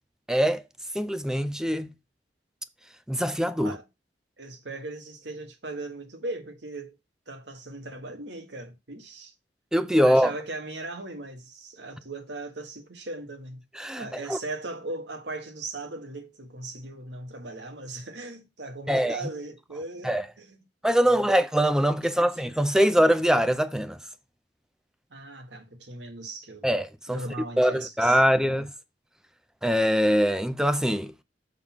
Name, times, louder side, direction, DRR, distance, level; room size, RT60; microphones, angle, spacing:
voice 1, 0.3-0.6 0.9-1.9 3.1-3.8 9.7-10.3 13.8-14.4 18.9-19.2 20.0-20.2 20.8-24.0 26.6-27.2 27.6-28.7 29.6-31.2, equal, 5° right, 0.5 m, -23 dB
voice 2, 4.4-7.0 7.3-9.3 10.0-13.6 14.0-20.7 21.0-21.4 22.2-22.3 25.1-26.7 27.1-28.6, right 2 dB, 75° right, 1.6 m, -38 dB
6.7 x 3.9 x 5.8 m
head